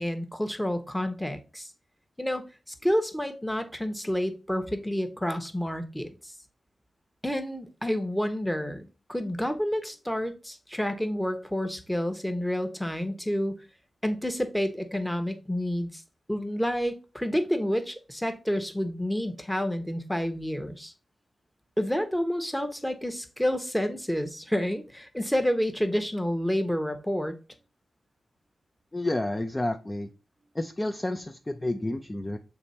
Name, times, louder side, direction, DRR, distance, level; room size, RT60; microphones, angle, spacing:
voice 1, 0.0-1.7 2.2-2.4 2.8-6.1 7.2-13.6 14.0-16.0 16.3-20.9 21.8-27.3, equal, 5° left, 1.1 m, -29 dB
voice 2, 28.9-30.1 30.5-32.4, left 1 dB, 20° left, 0.5 m, -30 dB
7.0 x 3.3 x 4.2 m
cardioid pair, 75°, 0 cm